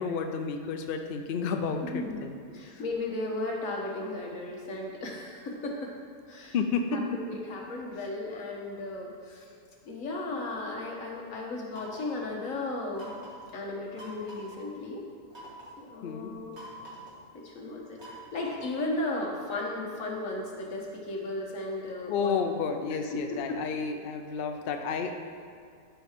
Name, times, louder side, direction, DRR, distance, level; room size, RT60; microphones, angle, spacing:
voice 1, 0.0-2.3 6.5-6.8 16.0-16.3 22.1-25.1, left 5 dB, 90° left, 5 dB, 0.5 m, -31 dB
voice 2, 1.8-5.9 6.3-6.5 6.9-9.5 9.8-13.1 13.5-15.0 15.8-16.5 17.3-18.0 18.3-22.4 22.9-23.6, left 2 dB, 55° left, -1 dB, 1.5 m, -35 dB
sound 1, 11.7-12.2 13.0-13.5 14.0-14.6 15.3-15.8 16.5-17.2 18.0-18.8, right 1 dB, 40° right, 1.9 m, -46 dB
12.5 x 4.6 x 3.6 m, 2.4 s
omnidirectional pair, 1.7 m